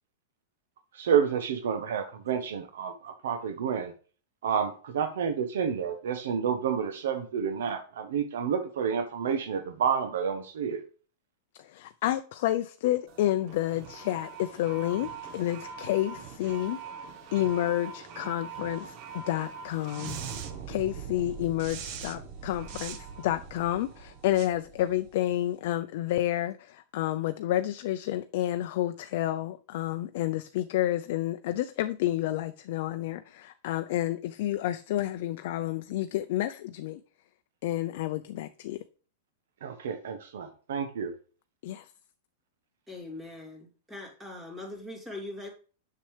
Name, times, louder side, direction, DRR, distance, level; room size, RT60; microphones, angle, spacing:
voice 1, 0.9-3.9 4.4-10.8 39.6-41.1, right 7 dB, 80° right, 1.1 m, -29 dB
voice 2, 11.6-16.8 17.3-20.2 20.7-37.0 37.6-38.8 41.6-41.9, left 14 dB, 55° left, 0.5 m, -30 dB
sound 1, 13.1-25.5, right 6 dB, 40° right, 1.2 m, -42 dB
voice 3, 42.9-45.5, left 2 dB, 10° right, 2.6 m, -41 dB
7.3 x 6.7 x 3.3 m
supercardioid pair, 155°, 0 cm